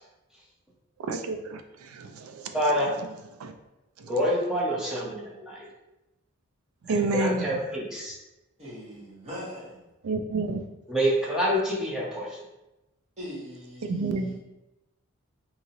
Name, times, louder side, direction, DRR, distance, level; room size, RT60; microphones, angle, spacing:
voice 1, 1.0-2.6 3.4-3.5 4.0-4.1 6.8-7.6 10.0-10.6 13.8-14.3, right 3 dB, 75° right, 0.4 m, -29 dB
voice 2, 2.5-2.9 4.1-5.7 6.9-8.1 10.9-12.4, equal, 5° right, 0.7 m, -27 dB
voice 3, 8.6-9.8 13.2-14.4, equal, 30° right, 1.4 m, -41 dB
2.9 x 2.7 x 2.7 m
head